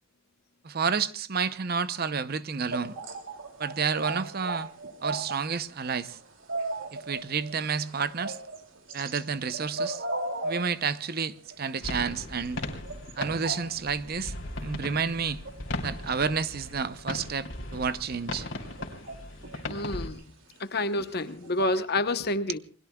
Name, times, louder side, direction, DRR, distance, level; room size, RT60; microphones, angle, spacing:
voice 1, 0.6-3.0 3.6-4.7 5.0-6.2 6.9-8.4 8.9-10.0 10.4-12.6 13.2-15.4 15.8-18.5 22.5-22.6, right 5 dB, 50° right, 0.7 m, -30 dB
sound 1, 2.7-5.4 5.7-9.2 9.5-11.8 12.0-12.1 12.4-13.9 15.3-17.3 17.9-18.0 18.6-19.9 20.2-20.3 20.5-20.8 21.0-21.1 21.4-21.8, right 2 dB, 80° right, 2.6 m, -37 dB
sound 2, 11.8-20.1, left 1 dB, 70° left, 3.1 m, -38 dB
voice 2, 19.7-20.2 20.6-22.6, left 2 dB, 50° left, 1.0 m, -28 dB
29.0 x 21.0 x 2.3 m
head